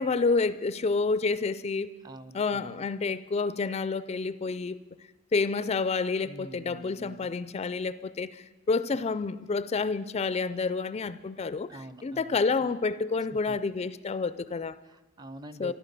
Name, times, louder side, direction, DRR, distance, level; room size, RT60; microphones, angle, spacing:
voice 1, 0.0-1.9 2.3-4.8 5.3-11.7 12.0-14.8 15.6-15.7, left 4 dB, 30° left, 0.4 m, -29 dB
voice 2, 2.0-2.9 6.2-7.3 11.7-12.4 13.5-13.6 14.8-15.7, right 1 dB, 20° right, 0.6 m, -46 dB
14.5 x 12.0 x 6.7 m
head